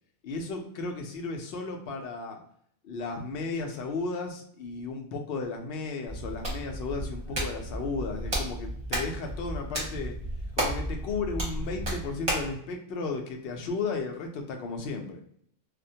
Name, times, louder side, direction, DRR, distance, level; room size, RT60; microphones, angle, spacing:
voice 1, 0.2-2.4 2.8-10.1 10.6-15.2, left 3 dB, 60° left, 3 dB, 0.7 m, -34 dB
Hands, 6.1-12.5, right 1 dB, 30° right, 0.8 m, -33 dB
2.3 x 2.1 x 2.7 m, 0.66 s
omnidirectional pair, 1.2 m